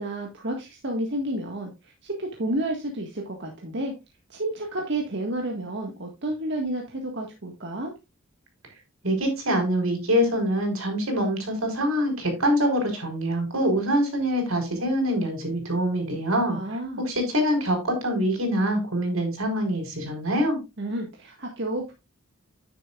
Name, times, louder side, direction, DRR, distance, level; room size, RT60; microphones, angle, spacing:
voice 1, 0.0-3.9 4.3-7.9 16.5-17.0 20.8-21.9, right 1 dB, 60° right, 1 dB, 1.7 m, -31 dB
voice 2, 9.0-16.6 17.0-20.6, equal, 85° right, 4 dB, 4.7 m, -24 dB
11.0 x 9.3 x 2.4 m, 0.24 s
head